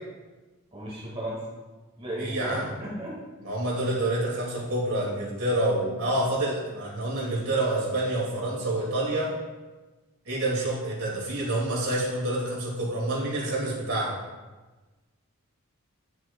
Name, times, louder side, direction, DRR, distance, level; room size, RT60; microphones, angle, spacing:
voice 1, 0.7-1.4 2.0-3.1, right 1 dB, 25° right, -5 dB, 2.0 m, -34 dB
voice 2, 2.1-2.7 3.4-9.3 10.3-14.1, right 1 dB, 75° right, -4 dB, 2.4 m, -28 dB
10.5 x 6.1 x 2.3 m, 1.2 s
head